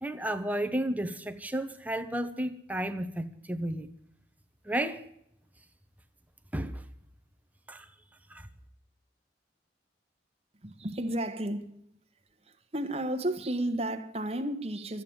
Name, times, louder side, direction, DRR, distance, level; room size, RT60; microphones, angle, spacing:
voice 1, 0.0-3.9 4.6-5.0 6.5-6.8 7.7-7.9 8.3-8.5, right 1 dB, 10° right, 0.9 m, -32 dB
voice 2, 10.6-11.8 12.4-15.0, right 1 dB, 35° right, 1.3 m, -32 dB
13.5 x 8.9 x 9.4 m
head